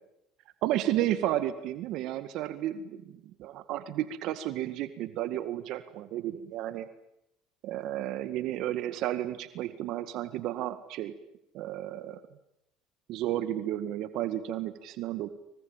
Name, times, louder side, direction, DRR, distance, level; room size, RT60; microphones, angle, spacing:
voice 1, 0.6-6.9 7.6-11.1 11.5-12.2 13.1-15.3, right 13 dB, 65° right, 11 dB, 1.9 m, -32 dB
25.5 x 25.0 x 9.1 m, 0.81 s
supercardioid pair, 95°, 0 cm